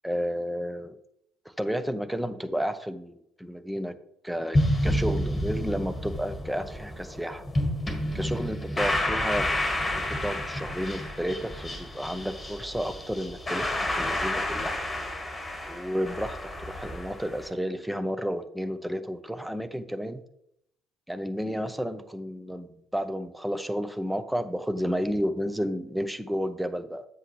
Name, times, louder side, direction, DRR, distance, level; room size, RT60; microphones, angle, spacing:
voice 1, 0.0-1.0 1.6-4.0 4.2-7.4 8.1-9.5 9.9-14.8 15.7-20.2 21.1-27.1, equal, 5° right, 10 dB, 0.7 m, -31 dB
sound 1, 4.5-17.5, left 1 dB, 15° left, 1.8 m, -30 dB
7.7 x 6.4 x 3.2 m, 0.74 s
figure-of-eight pair, 55°, 0 cm